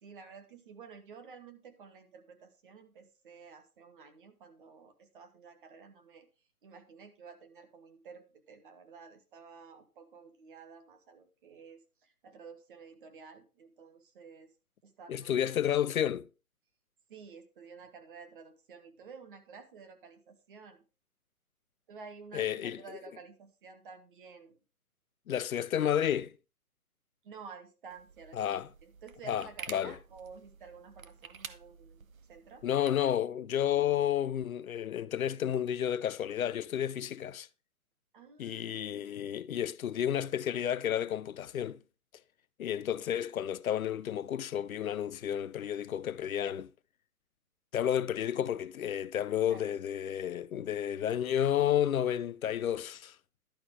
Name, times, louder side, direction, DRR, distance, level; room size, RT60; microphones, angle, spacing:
voice 1, 0.0-6.3 6.6-14.5 14.8-15.5 17.1-20.9 21.9-24.6 27.2-32.6 38.1-39.1 49.5-49.7, right 5 dB, 35° right, 1.5 m, -52 dB
voice 2, 15.1-16.3 22.3-22.8 25.3-26.3 28.3-28.7 29.3-29.9 32.6-37.5 38.4-41.8 42.6-46.7 47.7-53.2, left 10 dB, 65° left, 0.6 m, -31 dB
sound 1, 27.9-33.1, right 6 dB, 65° right, 1.0 m, -49 dB
11.5 x 5.7 x 4.8 m
hypercardioid pair, 155°, 45 cm